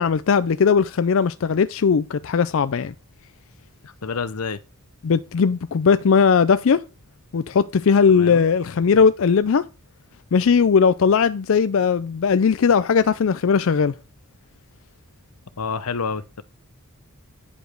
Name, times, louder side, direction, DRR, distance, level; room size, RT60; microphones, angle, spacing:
voice 1, 0.0-2.9 5.0-6.8 7.3-9.7 10.3-13.9, left 6 dB, 60° left, 0.4 m, -18 dB
voice 2, 3.8-4.6 8.1-8.4 15.6-16.4, left 5 dB, 90° left, 0.8 m, -29 dB
10.0 x 5.1 x 4.6 m
head